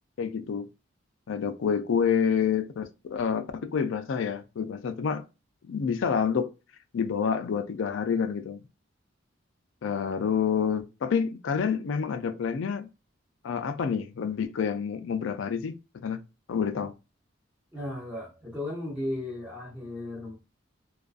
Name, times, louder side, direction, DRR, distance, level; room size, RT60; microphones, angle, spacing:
voice 1, 0.2-0.7 1.3-5.2 5.6-6.5 6.9-8.6 9.8-12.9 13.4-16.2 16.5-16.9, left 6 dB, 75° left, 0.4 m, -28 dB
voice 2, 17.7-20.4, left 1 dB, 5° right, 0.9 m, -35 dB
2.4 x 2.3 x 2.4 m
head